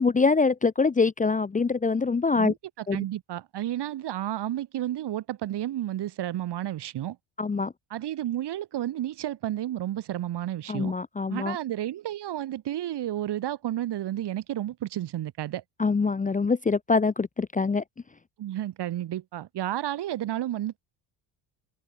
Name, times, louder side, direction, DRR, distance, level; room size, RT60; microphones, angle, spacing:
voice 1, 0.0-2.5 2.9-3.0 7.4-7.7 10.7-11.6 15.8-17.8, left 4 dB, 15° left, 1.0 m, -24 dB
voice 2, 2.4-7.2 7.9-10.9 11.3-15.6 18.4-20.8, right 12 dB, 55° right, 4.1 m, -31 dB
cardioid pair, 130°, 48 cm